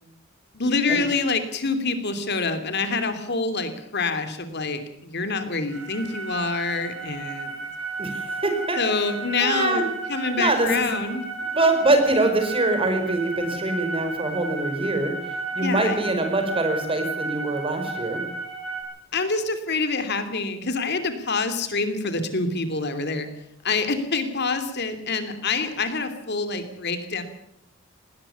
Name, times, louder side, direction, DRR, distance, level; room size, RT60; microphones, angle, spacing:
voice 1, 0.5-7.7 8.8-9.8 10.1-11.2 15.5-16.0 19.1-23.3 23.6-27.2, left 4 dB, 55° left, 8 dB, 2.9 m, -26 dB
sound 1, 5.7-18.8, right 3 dB, 65° right, 7.6 m, -33 dB
voice 2, 8.0-8.8 9.4-9.8 10.4-10.9 11.5-15.1 15.5-18.2, right 2 dB, 30° right, 7 dB, 4.9 m, -23 dB
20.0 x 19.0 x 7.0 m, 0.76 s
head